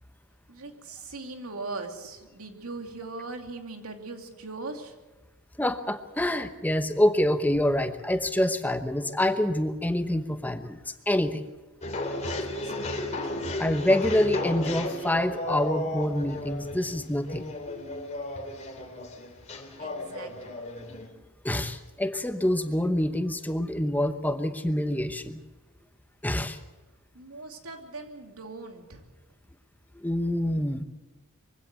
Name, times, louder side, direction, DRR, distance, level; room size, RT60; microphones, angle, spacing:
voice 1, 0.5-4.9 12.2-13.3 19.8-20.5 27.1-29.0, right 3 dB, 90° right, 4 dB, 2.7 m, -40 dB
voice 2, 5.6-10.8 11.1-11.5 13.6-17.9 20.9-21.0 21.4-25.4 26.2-26.6 29.9-30.8, left 1 dB, 10° left, 9 dB, 0.9 m, -26 dB
sound 1, 11.8-21.1, left 1 dB, 30° left, 3.0 m, -34 dB
23.5 x 16.5 x 8.1 m, 1.1 s
head